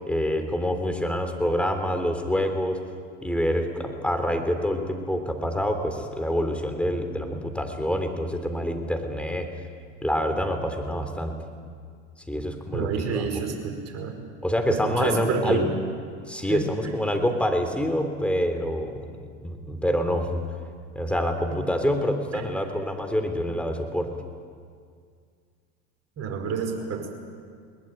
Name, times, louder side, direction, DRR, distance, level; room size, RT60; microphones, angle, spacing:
voice 1, 0.1-2.8 3.2-9.5 10.0-11.4 12.3-13.3 14.4-15.6 16.3-19.1 19.4-20.4 20.9-24.1, equal, 5° left, 5 dB, 3.4 m, -26 dB
voice 2, 12.7-14.2 14.7-15.7 16.5-16.7 22.3-22.4 26.2-27.1, right 5 dB, 45° right, 2 dB, 5.2 m, -28 dB
22.0 x 20.0 x 9.1 m, 2.1 s
hypercardioid pair, 85°, 36 cm